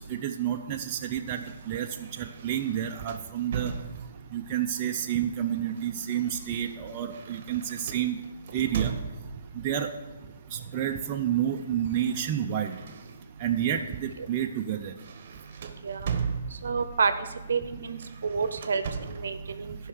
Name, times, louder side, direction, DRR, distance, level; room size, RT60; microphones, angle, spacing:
voice 1, 0.1-1.9 2.2-3.7 4.3-8.2 8.5-8.9 9.6-9.9 10.5-12.8 13.4-14.9, right 10 dB, 30° right, 3 dB, 0.6 m, -29 dB
sound 1, 1.3-4.4 5.3-9.5 10.5-10.9 11.2-13.5 14.0-14.2 14.6-16.9 17.9-19.4, right 6 dB, 45° right, 1.1 m, -39 dB
voice 2, 16.6-17.1 17.5-19.8, right 5 dB, 70° right, 11 dB, 0.8 m, -29 dB
11.0 x 5.5 x 6.5 m, 1.2 s
hypercardioid pair, 150°, 0 cm